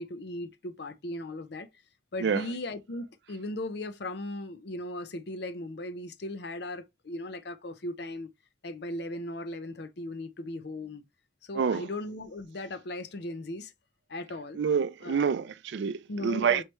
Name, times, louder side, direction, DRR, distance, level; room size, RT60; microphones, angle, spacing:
voice 1, 0.0-1.7 2.1-8.3 8.6-11.0 11.4-13.7 14.1-14.6 15.0-15.3 16.1-16.6, left 1 dB, 55° left, 0.6 m, -37 dB
voice 2, 11.5-11.9 14.6-16.6, right 6 dB, 65° right, 0.4 m, -27 dB
4.5 x 3.2 x 3.1 m
head